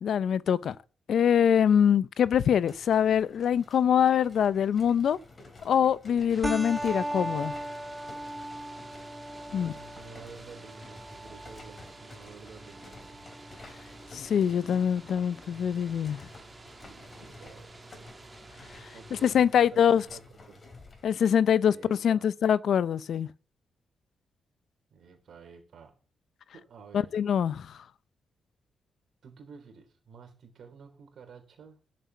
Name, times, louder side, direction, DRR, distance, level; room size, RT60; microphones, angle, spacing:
voice 1, 0.0-0.8 1.1-5.2 5.6-7.5 9.5-9.7 14.1-16.2 19.2-20.0 21.0-23.3 26.9-27.8, left 8 dB, 65° left, 0.5 m, -24 dB
sound 1, 2.3-21.1, left 3 dB, 25° left, 3.2 m, -53 dB
sound 2, 6.3-19.3, right 3 dB, 20° right, 1.5 m, -50 dB
sound 3, 6.4-15.4, right 1 dB, 5° right, 1.0 m, -39 dB
voice 2, 9.5-13.2 16.8-17.7 18.9-20.2 20.5-20.6 21.6-22.3 24.9-25.9 26.5-27.1 29.2-31.8, right 5 dB, 60° right, 3.6 m, -50 dB
11.0 x 7.6 x 8.3 m
wide cardioid pair, 165°, 0 cm